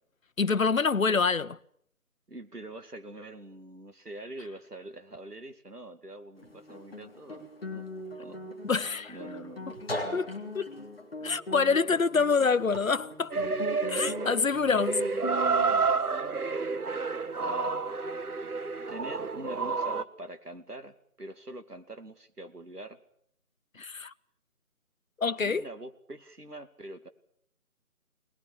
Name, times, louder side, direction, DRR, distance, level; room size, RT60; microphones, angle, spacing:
voice 1, 0.4-1.6 8.6-9.1 10.1-10.3 10.5-10.7 11.2-13.3 13.9-15.0 23.8-24.1 25.2-25.6, left 5 dB, 60° left, 0.9 m, -26 dB
voice 2, 2.3-7.4 7.7-7.8 8.2-8.4 9.1-9.7 17.4-17.8 18.9-23.0 25.4-27.1, right 1 dB, 90° right, 2.5 m, -44 dB
Guitar, 6.4-15.8, left 1 dB, ahead, 1.2 m, -39 dB
sound 1, 13.3-20.0, right 4 dB, 75° right, 1.3 m, -30 dB
23.0 x 19.5 x 8.6 m
figure-of-eight pair, 160°, 45 cm